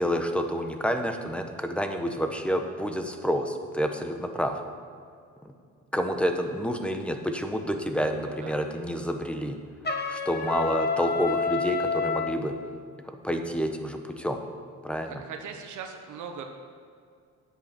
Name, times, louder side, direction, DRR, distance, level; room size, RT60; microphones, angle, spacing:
voice 1, 0.0-4.6 5.9-9.6 10.1-12.6 13.1-14.4 14.8-15.2, equal, 5° left, 5 dB, 1.1 m, -29 dB
voice 2, 8.2-8.6 15.0-16.4, right 6 dB, 75° right, 3 dB, 1.2 m, -40 dB
Trumpet, 9.8-12.4, left 4 dB, 35° left, 1.3 m, -28 dB
10.5 x 8.2 x 6.0 m, 2.2 s
cardioid pair, 90°, 30 cm